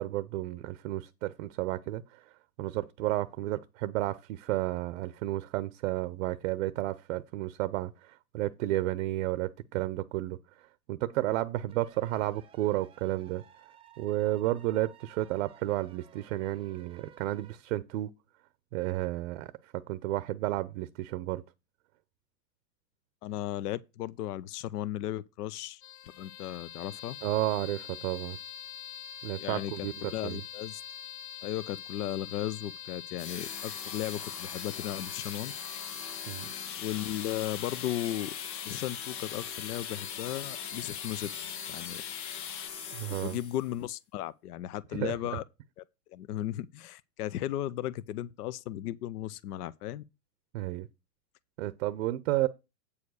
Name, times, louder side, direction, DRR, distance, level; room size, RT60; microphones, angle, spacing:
voice 1, 0.0-2.2 2.6-10.4 10.9-13.4 14.0-18.1 18.7-21.4 27.2-28.4 29.2-30.4 36.3-36.5 42.9-43.4 44.9-45.1 50.5-50.9 51.6-52.5, right 16 dB, 45° right, 0.6 m, -32 dB
sound 1, 11.7-17.5, right 9 dB, 10° right, 0.7 m, -57 dB
voice 2, 23.2-25.8 26.2-27.2 29.4-30.8 31.4-35.5 36.8-38.3 38.6-41.3 41.7-42.0 43.2-45.4 45.8-45.9 46.1-50.0, left 13 dB, 65° left, 0.7 m, -36 dB
sound 2, 25.8-42.7, left 9 dB, 35° left, 0.4 m, -44 dB
sound 3, 33.2-43.7, left 7 dB, 85° left, 2.1 m, -41 dB
8.5 x 4.8 x 6.2 m
hypercardioid pair, 145°, 50 cm